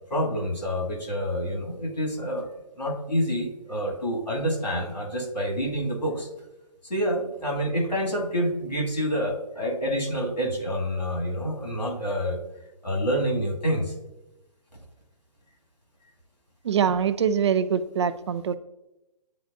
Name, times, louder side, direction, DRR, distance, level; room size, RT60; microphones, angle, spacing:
voice 1, 0.1-2.5 2.8-6.3 6.9-12.4 12.8-13.9, equal, 90° left, -1 dB, 2.2 m, -27 dB
voice 2, 16.6-18.5, right 7 dB, 45° right, 14 dB, 0.4 m, -24 dB
10.5 x 4.0 x 2.6 m, 0.95 s
figure-of-eight pair, 140°, 21 cm